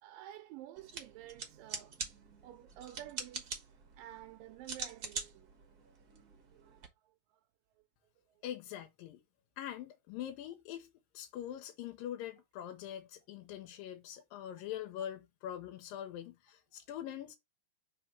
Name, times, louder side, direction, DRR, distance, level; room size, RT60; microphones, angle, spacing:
voice 1, 0.0-2.0 2.4-3.5 4.0-5.6 6.1-6.3 6.5-7.5 7.8-7.9 8.3-8.4, right 14 dB, 85° right, 2.3 m, -51 dB
sound 1, 0.8-6.9, right 4 dB, 65° right, 0.9 m, -45 dB
voice 2, 8.4-9.2 9.6-17.4, left 11 dB, 85° left, 2.6 m, -43 dB
5.2 x 3.4 x 5.7 m
omnidirectional pair, 3.9 m